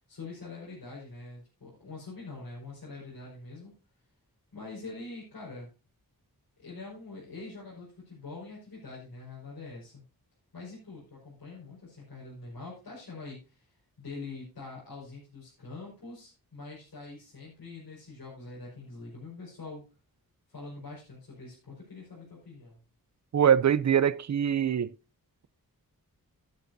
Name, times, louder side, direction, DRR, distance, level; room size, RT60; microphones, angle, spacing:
voice 1, 0.1-3.7 4.5-5.7 6.6-10.0 10.5-13.7 14.0-19.8 20.5-22.8, left 3 dB, 80° left, 5.1 m, -44 dB
voice 2, 23.3-24.9, right 8 dB, 50° right, 0.5 m, -23 dB
12.0 x 10.5 x 2.7 m
wide cardioid pair, 115°, 36 cm